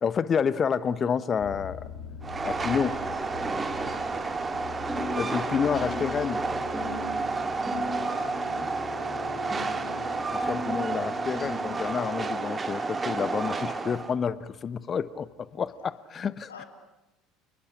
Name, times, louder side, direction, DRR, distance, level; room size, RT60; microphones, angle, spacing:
voice 1, 0.0-1.8 2.4-3.0 5.2-6.4 10.3-16.5, left 6 dB, 35° left, 17 dB, 1.0 m, -29 dB
sound 1, 1.4-13.7 14.2-14.6 15.2-15.3 15.6-15.7, left 8 dB, 55° left, 3.4 m, -46 dB
Train, 2.2-14.1, right 4 dB, 20° right, 2.1 m, -31 dB
voice 2, 3.8-4.3 8.1-8.4 16.5-16.7, left 6 dB, 75° left, 5 dB, 3.2 m, -46 dB
sound 2, 4.9-12.3, left 2 dB, 5° right, 6.9 m, -38 dB
29.0 x 20.0 x 9.9 m, 0.99 s
figure-of-eight pair, 65°, 0 cm